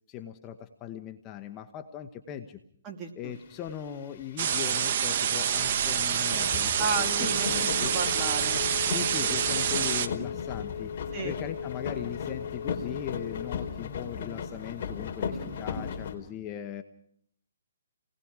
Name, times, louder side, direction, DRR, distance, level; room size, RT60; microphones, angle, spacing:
voice 1, 0.1-2.6 3.2-7.9 8.9-10.9 11.2-16.8, left 10 dB, 20° left, 7 dB, 1.1 m, -39 dB
voice 2, 2.8-3.3 6.8-8.6 11.1-11.4, right 4 dB, 20° right, 1 dB, 2.8 m, -33 dB
sound 1, 3.7-3.8 3.9-4.2 4.7-16.1, left 6 dB, 45° left, 3.8 m, -37 dB
sound 2, 4.4-10.1, right 8 dB, 45° right, 1.1 m, -27 dB
Telephone, 7.2-14.0, left 8 dB, 85° left, 2.9 m, -39 dB
29.5 x 19.5 x 4.9 m, 0.64 s
hypercardioid pair, 150°, 0 cm